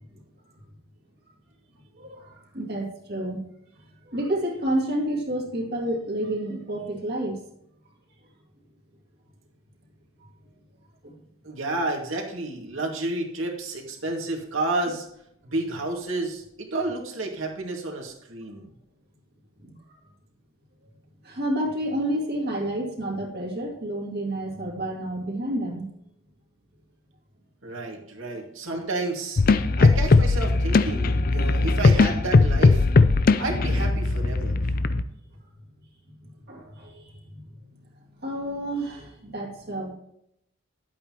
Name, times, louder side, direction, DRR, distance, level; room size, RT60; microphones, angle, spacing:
voice 1, 2.0-3.4 4.1-7.4 10.2-10.3 11.0-11.1 19.6-19.7 21.2-25.9 34.8-35.1 36.5-37.4 38.2-39.9, right 1 dB, 50° right, 0 dB, 2.3 m, -30 dB
voice 2, 11.4-15.1 15.4-18.7 27.6-29.4 29.8-32.9 33.3-34.7, right 2 dB, 65° right, 0 dB, 2.2 m, -31 dB
sound 1, 29.4-35.0, left 3 dB, 40° left, 0.4 m, -19 dB
11.0 x 8.5 x 3.0 m, 0.76 s
head